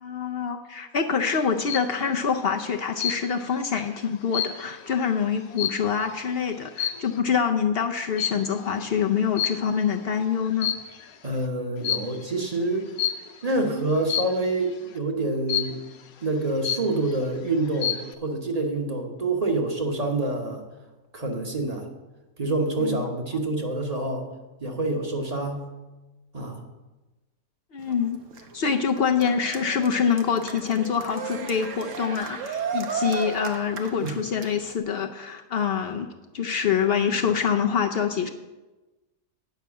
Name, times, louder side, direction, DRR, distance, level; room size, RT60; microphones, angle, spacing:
voice 1, 0.0-10.7 22.8-23.0 27.7-28.2 28.5-36.1 36.3-38.3, left 6 dB, 60° left, 4 dB, 0.7 m, -25 dB
sound 1, 1.3-1.9 3.0-3.5 3.9-6.2 6.7-7.2 8.2-8.6 9.4-10.0 10.4-11.1 11.8-12.2 13.0-13.4 14.1-14.5 15.5-16.0 16.4-16.5 16.6-17.2 17.6-18.1, left 9 dB, 85° left, 1.2 m, -29 dB
voice 2, 11.2-12.8 13.4-15.8 16.2-20.6 21.1-21.8 22.4-24.3 24.6-25.7 26.3-26.6 34.0-34.1, right 2 dB, 30° right, 2 dB, 1.1 m, -27 dB
Cheering, 27.8-34.8, right 6 dB, 65° right, 1.2 m, -35 dB
9.4 x 5.7 x 7.1 m, 1.1 s
omnidirectional pair, 1.5 m